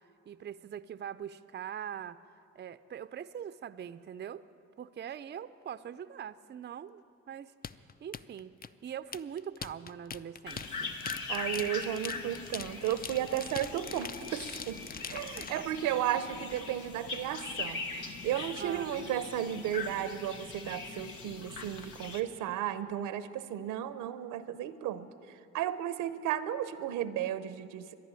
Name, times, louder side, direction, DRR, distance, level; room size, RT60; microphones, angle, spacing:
voice 1, 0.3-2.2 2.5-4.4 4.8-7.5 8.0-8.6 8.8-10.9 15.4-15.7 18.6-19.1, right 9 dB, 35° right, 12 dB, 0.5 m, -42 dB
sound 1, 7.6-15.6, left 6 dB, 30° left, 0.5 m, -43 dB
sound 2, 10.5-22.2, left 4 dB, 75° left, 1.4 m, -41 dB
voice 2, 11.3-17.9 18.2-28.0, right 11 dB, 80° right, 13 dB, 0.8 m, -34 dB
13.0 x 11.0 x 9.7 m, 2.8 s
supercardioid pair, 60°, 31 cm